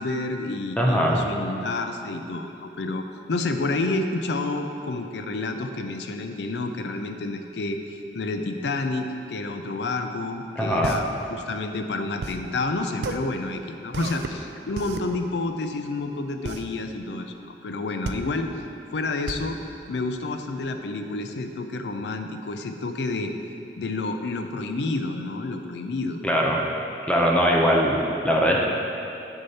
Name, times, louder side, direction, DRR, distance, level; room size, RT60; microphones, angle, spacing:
voice 1, 0.0-17.3 17.6-18.5 18.9-19.6 19.9-23.3 23.8-26.2, left 2 dB, 75° left, 6 dB, 0.5 m, -29 dB
voice 2, 0.8-1.2 10.6-11.0 26.2-26.7 27.1-28.6, equal, 5° left, -2 dB, 0.6 m, -21 dB
sound 1, 10.8-20.7, right 3 dB, 70° right, 0.4 m, -35 dB
7.2 x 6.5 x 4.2 m, 2.7 s
head